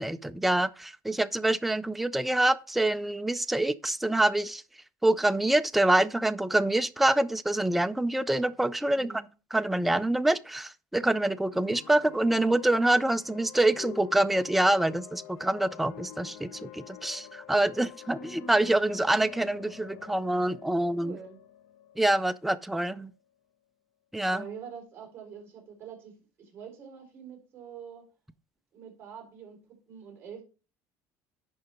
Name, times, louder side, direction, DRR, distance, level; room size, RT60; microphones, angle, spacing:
voice 1, 0.0-4.6 5.0-9.1 9.5-21.2 22.0-23.1 24.1-24.4, right 1 dB, ahead, 0.3 m, -26 dB
voice 2, 8.9-9.3 20.8-21.4 24.3-26.1 26.4-28.0 28.7-29.6 29.9-30.4, right 7 dB, 30° right, 4.1 m, -45 dB
sound 1, 11.5-23.1, left 10 dB, 70° left, 0.9 m, -47 dB
10.5 x 3.8 x 4.5 m
cardioid pair, 155°, 7 cm